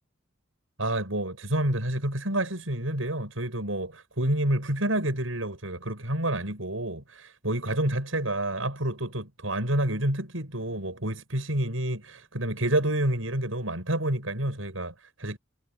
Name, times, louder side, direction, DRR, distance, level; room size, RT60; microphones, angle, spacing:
voice 1, 0.8-15.4, right 1 dB, 85° right, 7.9 m, -29 dB
head